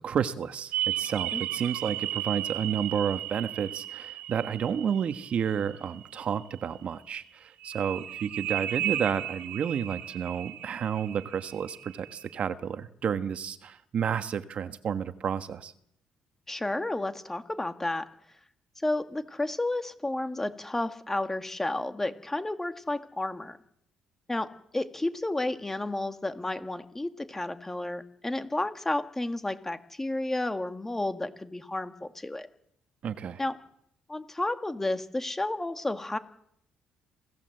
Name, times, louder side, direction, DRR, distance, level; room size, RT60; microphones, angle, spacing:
voice 1, 0.0-15.7 33.0-33.4, right 8 dB, 50° right, 10 dB, 1.4 m, -31 dB
sound 1, 0.7-6.3 7.6-12.4, right 13 dB, 90° right, 2.4 m, -35 dB
voice 2, 16.5-18.0 18.8-23.6 24.3-24.5 24.7-32.5 33.4-33.6 34.1-36.2, left 2 dB, 10° left, 9 dB, 1.7 m, -31 dB
27.5 x 17.5 x 7.9 m, 0.73 s
cardioid pair, 110°, 3 cm